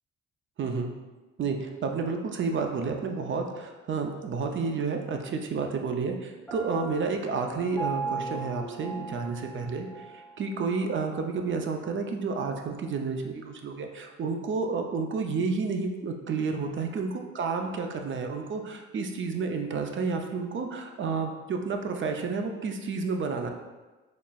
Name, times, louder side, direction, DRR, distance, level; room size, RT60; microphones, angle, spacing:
voice 1, 0.6-0.9 1.4-23.5, right 4 dB, 40° right, 4 dB, 0.5 m, -30 dB
Piano, 6.5-10.3, right 3 dB, 5° left, 0.7 m, -37 dB
4.2 x 3.1 x 2.3 m, 1.2 s
cardioid pair, 90°, 30 cm